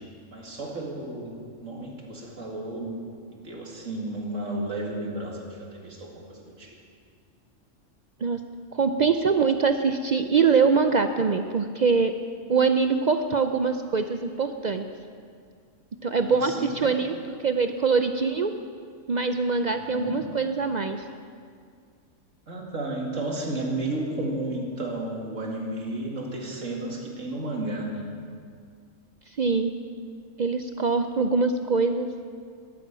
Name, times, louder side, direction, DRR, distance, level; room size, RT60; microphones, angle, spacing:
voice 1, 0.3-3.0 3.3-6.7 16.1-17.0 19.7-20.2 22.5-28.0, right 2 dB, 75° right, -1 dB, 2.5 m, -33 dB
voice 2, 8.7-12.2 12.5-14.8 16.0-17.1 17.4-18.5 19.1-21.0 29.4-29.8 30.4-32.1, right 5 dB, 60° right, 7 dB, 0.4 m, -23 dB
13.5 x 12.0 x 6.2 m, 2.2 s
omnidirectional pair, 1.3 m